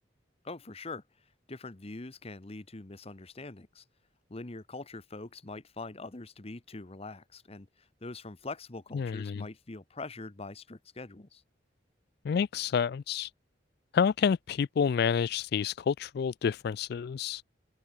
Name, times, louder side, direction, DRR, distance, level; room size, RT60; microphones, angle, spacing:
voice 1, 0.4-1.0 1.5-3.8 4.3-11.4, left 3 dB, 30° left, 1.0 m, -43 dB
voice 2, 8.9-9.4 12.2-13.3 13.9-17.4, left 7 dB, 55° left, 0.3 m, -29 dB
open air
head